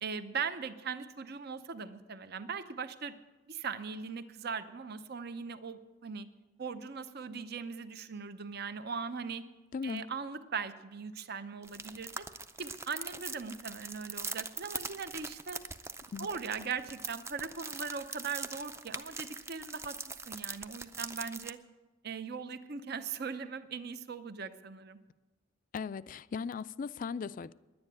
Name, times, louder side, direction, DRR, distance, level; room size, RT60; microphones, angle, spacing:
voice 1, 0.0-3.1 3.5-6.3 6.6-9.4 9.8-12.1 12.6-15.6 16.2-20.0 20.3-21.6 22.0-25.0, right 5 dB, 55° right, 0.7 m, -39 dB
voice 2, 9.7-10.1 16.1-16.3 25.7-27.5, left 5 dB, 45° left, 0.3 m, -38 dB
sound 1, 11.6-21.5, right 3 dB, 15° right, 0.5 m, -42 dB
10.5 x 9.6 x 9.3 m
head